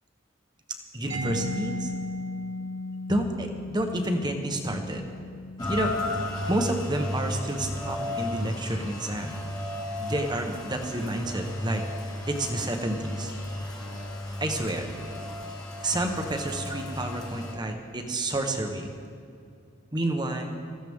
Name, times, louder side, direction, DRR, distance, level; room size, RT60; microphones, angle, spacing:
voice 1, 0.9-1.9 3.1-5.1 5.7-5.9 6.5-9.3 10.0-11.8 12.3-13.3 14.4-14.9 15.8-18.9 19.9-20.5, right 1 dB, 20° right, 4 dB, 1.1 m, -29 dB
Mallet percussion, 1.1-8.6, left 2 dB, 65° right, 2.5 m, -38 dB
Rain, 5.6-17.5, left 1 dB, 20° left, 1.7 m, -34 dB
19.0 x 14.5 x 3.6 m, 2.6 s
head